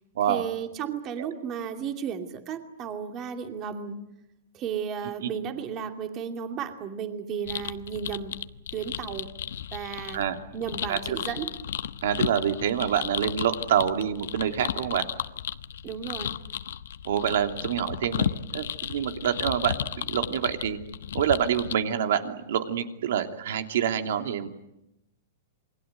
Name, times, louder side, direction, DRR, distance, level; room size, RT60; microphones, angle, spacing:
voice 1, 0.3-4.0 4.5-8.4 8.7-9.3 9.7-10.2 10.5-11.5 15.8-16.3, right 7 dB, 30° right, 6 dB, 2.6 m, -34 dB
sound 1, 7.4-21.7, left 9 dB, 80° left, 1.1 m, -34 dB
voice 2, 12.0-15.1 17.0-20.8 21.1-24.5, right 9 dB, 70° right, 6 dB, 2.9 m, -27 dB
28.0 x 22.0 x 9.4 m, 0.86 s
supercardioid pair, 155°, 0 cm